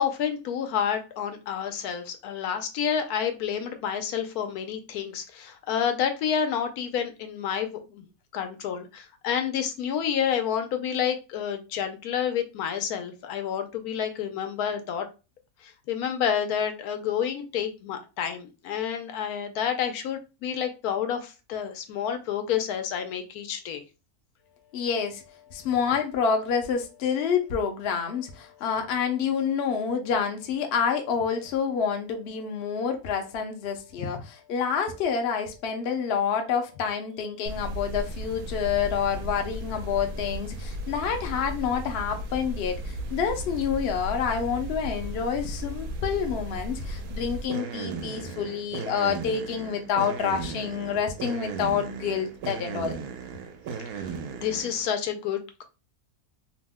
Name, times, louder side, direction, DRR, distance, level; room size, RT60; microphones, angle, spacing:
voice 1, 0.0-8.0 8.3-15.1 15.6-23.8 34.0-34.1 48.1-48.2 53.9-55.6, left 8 dB, 85° left, 1.1 m, -29 dB
voice 2, 24.7-25.2 25.5-34.2 34.5-52.9, left 7 dB, 60° left, 0.7 m, -28 dB
sound 1, 37.5-54.9, right 2 dB, 80° right, 1.0 m, -36 dB
2.9 x 2.0 x 3.4 m
omnidirectional pair, 1.6 m